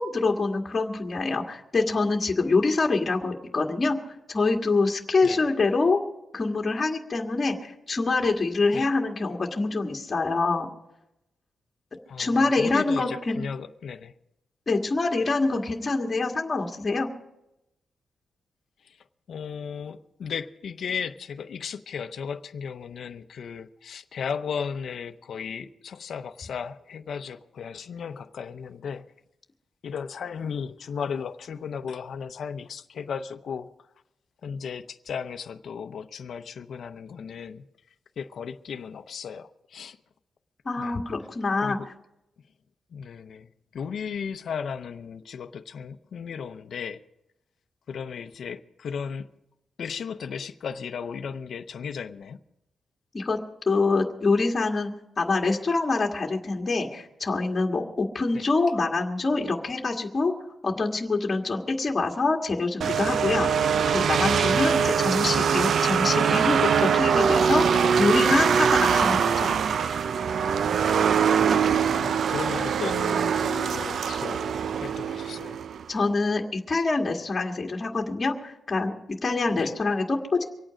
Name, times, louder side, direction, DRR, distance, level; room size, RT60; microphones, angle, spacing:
voice 1, 0.0-6.0 6.3-10.7 12.2-13.4 14.7-17.1 40.7-41.8 53.1-53.4 53.7-60.3 60.6-69.5 75.9-78.9 79.2-80.4, left 3 dB, 25° left, 1.8 m, -25 dB
voice 2, 12.1-14.1 18.8-19.0 19.3-29.1 29.8-33.9 34.4-37.6 38.2-40.0 40.8-41.0 41.6-41.9 42.9-47.0 47.9-49.3 49.8-52.4 58.3-58.4 64.8-65.0 68.9-69.0 71.4-75.6 79.6-79.7, left 6 dB, 60° left, 0.7 m, -35 dB
sound 1, 62.8-75.8, right 7 dB, 60° right, 0.4 m, -23 dB
24.5 x 8.9 x 5.1 m
wide cardioid pair, 135°, 0 cm